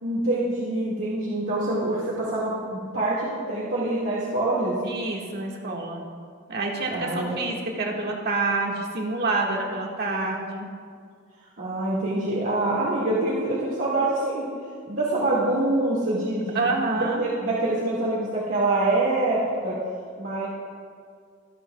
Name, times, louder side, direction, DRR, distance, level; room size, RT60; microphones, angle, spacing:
voice 1, 0.0-4.8 6.9-7.4 11.6-14.5 14.9-19.7 20.2-20.5, right 2 dB, 70° right, -7 dB, 2.2 m, -25 dB
voice 2, 4.8-6.0 6.5-10.7 16.5-17.2, right 3 dB, 55° right, -1 dB, 1.8 m, -27 dB
25.0 x 8.5 x 2.4 m, 2.1 s
head